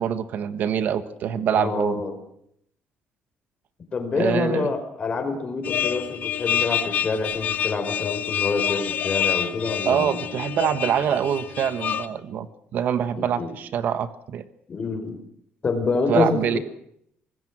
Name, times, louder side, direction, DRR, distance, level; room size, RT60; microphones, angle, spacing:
voice 1, 0.0-2.0 4.1-4.7 9.8-14.4 16.1-16.6, right 8 dB, 50° right, 12 dB, 1.4 m, -25 dB
voice 2, 1.5-2.2 3.9-10.2 13.2-13.5 14.7-15.2 15.6-16.6, left 4 dB, 30° left, 6 dB, 5.0 m, -26 dB
sound 1, 5.6-12.1, left 9 dB, 50° left, 1.7 m, -27 dB
25.0 x 20.5 x 6.2 m, 0.70 s
cardioid pair, 155°, 4 cm